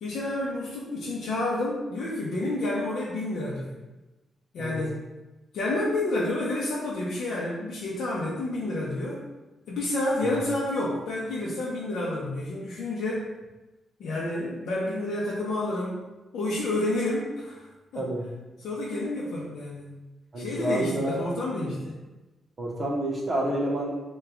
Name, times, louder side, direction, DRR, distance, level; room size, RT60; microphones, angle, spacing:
voice 1, 0.0-3.7 4.5-4.9 5.5-9.2 9.7-13.3 14.0-16.0 16.3-17.7 17.9-18.0 18.6-19.9 20.4-21.9, left 2 dB, 80° left, -7 dB, 0.6 m, -29 dB
voice 2, 17.9-18.3 20.3-21.3 22.6-24.0, right 1 dB, 30° right, -2 dB, 0.6 m, -29 dB
3.0 x 2.2 x 3.7 m, 1.1 s
wide cardioid pair, 150°, 0 cm